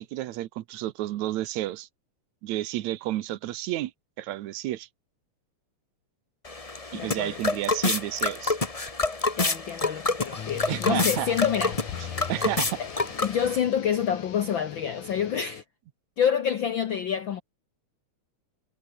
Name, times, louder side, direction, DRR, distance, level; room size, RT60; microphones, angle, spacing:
voice 1, 0.0-1.9 2.4-3.9 4.2-4.9 6.9-8.6 10.7-11.3 12.3-12.7, right 15 dB, 75° right, 2.1 m, -31 dB
sound 1, 6.4-13.6, left 3 dB, 30° left, 0.6 m, -28 dB
voice 2, 6.9-7.5 9.4-12.2 12.8-12.9 13.2-15.6 16.2-17.4, left 8 dB, 70° left, 1.1 m, -28 dB
sound 2, 10.3-15.6, left 9 dB, 85° left, 3.6 m, -40 dB
omnidirectional pair, 3.5 m